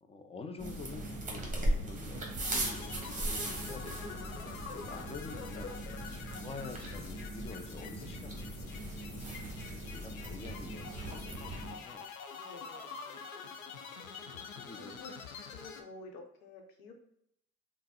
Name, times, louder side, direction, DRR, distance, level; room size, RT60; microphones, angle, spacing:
voice 1, 0.0-4.0 4.3-5.7 6.3-12.1 14.2-15.0, left 4 dB, 15° left, 6 dB, 0.4 m, -48 dB
sound 1, 0.6-11.7, right 1 dB, 20° right, 1.1 m, -38 dB
sound 2, 2.4-15.8, left 5 dB, 85° left, 0.5 m, -47 dB
voice 2, 12.3-13.2 14.0-14.2 14.8-15.2 15.5-16.9, left 3 dB, 65° left, 3 dB, 0.8 m, -51 dB
5.4 x 2.1 x 2.3 m, 0.76 s
figure-of-eight pair, 55°, 41 cm